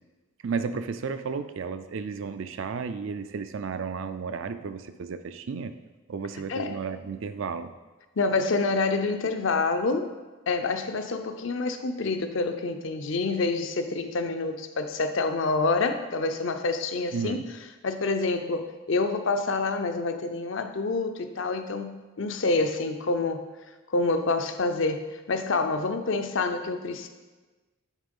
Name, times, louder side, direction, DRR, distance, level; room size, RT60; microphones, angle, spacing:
voice 1, 0.4-5.7 6.1-7.7 17.1-17.5, right 5 dB, 65° right, 10 dB, 0.4 m, -33 dB
voice 2, 8.2-10.1 10.5-17.4 17.8-23.4 23.9-27.1, left 3 dB, 65° left, 7 dB, 0.6 m, -27 dB
7.3 x 3.7 x 5.3 m, 1.2 s
head